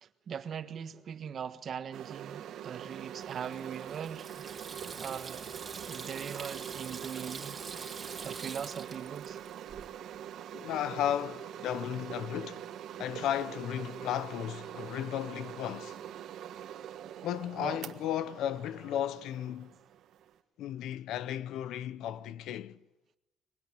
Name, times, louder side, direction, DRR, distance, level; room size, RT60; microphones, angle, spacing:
voice 1, 0.0-4.5 5.0-5.5 5.9-7.6 8.2-9.4 17.6-17.8, right 7 dB, 45° right, 1.4 m, -40 dB
sound 1, 1.9-20.4, right 10 dB, 65° right, 1.4 m, -44 dB
Water tap faucet / Sink (filling or washing), 3.1-9.9, right 5 dB, 25° right, 2.6 m, -45 dB
voice 2, 10.5-12.6 13.0-16.0 17.2-19.7 20.6-22.8, left 11 dB, 80° left, 0.9 m, -34 dB
24.0 x 23.0 x 10.0 m
cardioid pair, 155°, 0 cm